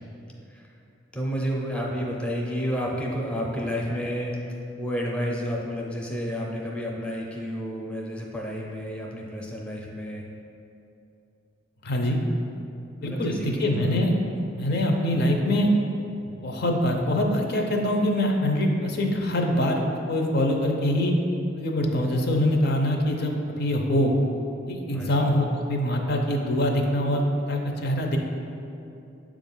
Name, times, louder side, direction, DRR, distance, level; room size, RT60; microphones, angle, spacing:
voice 1, 1.1-10.2 13.0-13.9 24.9-25.4, equal, 5° left, -2 dB, 0.6 m, -31 dB
voice 2, 11.8-12.2 13.0-14.1 14.6-15.7 16.4-19.8 20.1-21.1 21.6-24.1 24.7-27.2 27.5-28.2, left 1 dB, 55° left, 2 dB, 0.6 m, -24 dB
7.2 x 2.4 x 5.4 m, 2.8 s
head